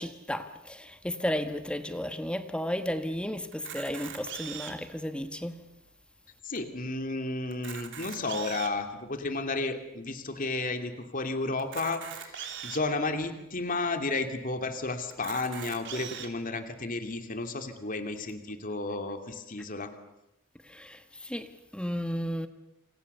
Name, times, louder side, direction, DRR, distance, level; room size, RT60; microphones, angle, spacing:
voice 1, 0.0-5.7 20.6-22.5, equal, 5° left, 1.2 m, -34 dB
Camera, 3.5-4.9 5.6-5.7 5.9-6.0 6.6-6.7 7.5-8.8 9.5-9.6 11.6-12.8 13.5-13.6 13.9-14.0 15.1-16.3, right 8 dB, 60° right, 3.2 m, -41 dB
voice 2, 6.4-19.9, left 3 dB, 40° left, 2.7 m, -32 dB
28.0 x 27.0 x 6.9 m
head